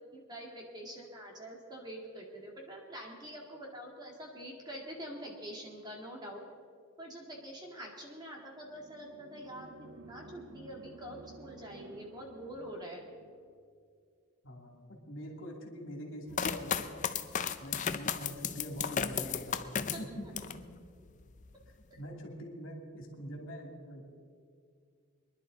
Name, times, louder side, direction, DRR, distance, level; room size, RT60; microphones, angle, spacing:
voice 1, 0.1-6.4 7.0-13.1 19.9-20.0, equal, 20° right, -1 dB, 2.1 m, -45 dB
sound 1, 8.6-13.6, right 2 dB, 65° right, 0.9 m, -53 dB
voice 2, 14.4-17.0 17.6-20.7 21.8-24.0, equal, 60° left, 0 dB, 2.7 m, -44 dB
sound 2, 16.3-20.6 21.1-21.7, left 7 dB, 35° left, 0.5 m, -34 dB
24.0 x 11.0 x 4.0 m, 2.2 s
head